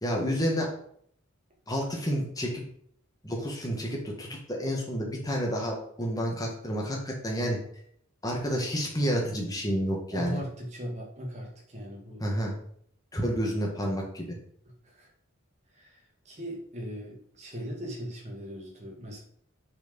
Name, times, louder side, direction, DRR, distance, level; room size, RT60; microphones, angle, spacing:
voice 1, 0.0-0.7 1.7-2.6 3.2-7.6 8.2-10.4 12.2-12.6 13.1-14.4, equal, 15° left, -1 dB, 1.7 m, -30 dB
voice 2, 10.1-12.2 14.7-15.1 15.7-19.2, equal, 30° right, -1 dB, 2.1 m, -39 dB
6.8 x 4.8 x 5.3 m, 0.65 s
head